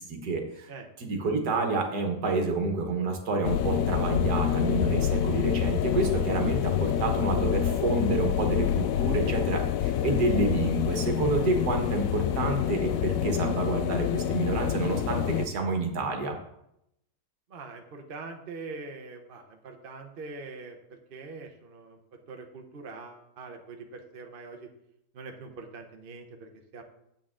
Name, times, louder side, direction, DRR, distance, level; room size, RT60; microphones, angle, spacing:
voice 1, 0.0-0.7 1.0-16.4, right 3 dB, 65° right, 4 dB, 1.8 m, -29 dB
sound 1, 3.4-15.5, left 10 dB, 70° left, 0.8 m, -27 dB
voice 2, 17.5-22.0 22.3-24.7 25.1-26.8, right 3 dB, 40° right, 3 dB, 0.9 m, -43 dB
8.5 x 8.3 x 3.7 m, 0.79 s
omnidirectional pair, 1.9 m